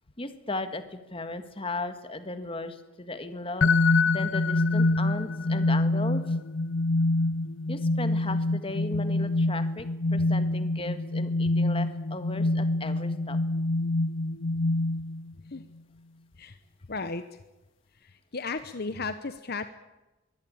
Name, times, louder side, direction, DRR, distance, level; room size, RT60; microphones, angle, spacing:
voice 1, 0.2-3.7 4.1-6.3 7.7-13.4, left 2 dB, 25° left, 9 dB, 1.8 m, -36 dB
sound 1, 3.6-15.3, left 2 dB, 70° left, 0.7 m, -26 dB
voice 2, 16.9-17.2 18.0-19.6, left 4 dB, 50° left, 10 dB, 1.0 m, -34 dB
23.5 x 17.0 x 8.8 m, 1.1 s
head